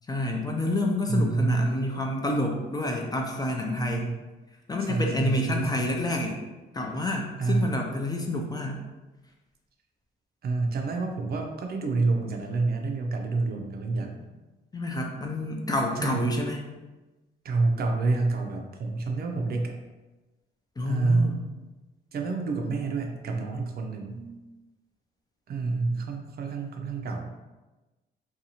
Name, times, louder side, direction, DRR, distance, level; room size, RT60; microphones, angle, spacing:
voice 1, 0.1-4.1 4.7-6.4 6.7-8.8 14.7-16.6 20.8-21.4, left 1 dB, 20° left, 1 dB, 0.4 m, -28 dB
voice 2, 1.1-1.7 3.8-4.2 4.9-5.9 7.4-7.8 10.4-14.1 16.0-16.4 17.4-19.8 20.9-21.4 22.1-24.3 25.5-27.3, right 3 dB, 50° right, 3 dB, 0.5 m, -28 dB
2.6 x 2.3 x 2.8 m, 1.1 s
cardioid pair, 90°, 20 cm